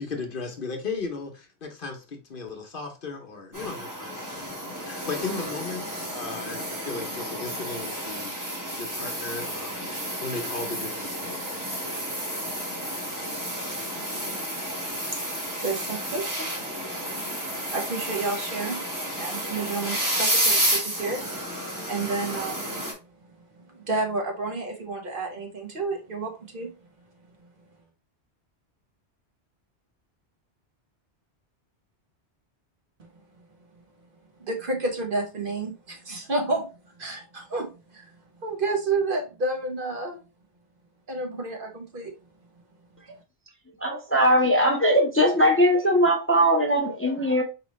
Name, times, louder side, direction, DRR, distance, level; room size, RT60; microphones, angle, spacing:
voice 1, 0.0-11.8, left 4 dB, 55° left, 1.0 m, -36 dB
sound 1, 3.5-22.9, equal, 15° right, 1.4 m, -31 dB
voice 2, 14.0-26.9 27.4-27.5 33.0-33.8 34.4-40.2 41.1-42.1, right 3 dB, 50° right, 1.2 m, -32 dB
voice 3, 43.8-47.4, equal, 15° left, 0.7 m, -20 dB
4.8 x 3.0 x 3.1 m
omnidirectional pair, 1.1 m